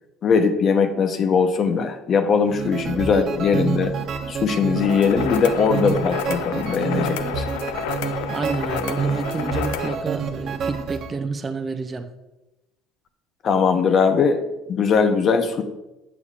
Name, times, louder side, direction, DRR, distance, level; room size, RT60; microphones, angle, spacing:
voice 1, 0.2-3.9 4.3-7.5 13.4-15.6, left 5 dB, 45° left, 8 dB, 0.7 m, -20 dB
sound 1, 2.5-11.1, right 5 dB, 55° right, 0.8 m, -28 dB
sound 2, 4.8-10.0, left 9 dB, 90° left, 0.4 m, -30 dB
voice 2, 8.3-12.1, right 4 dB, 25° right, 7 dB, 0.5 m, -29 dB
8.2 x 7.0 x 2.5 m, 1.0 s
supercardioid pair, 105°, 0 cm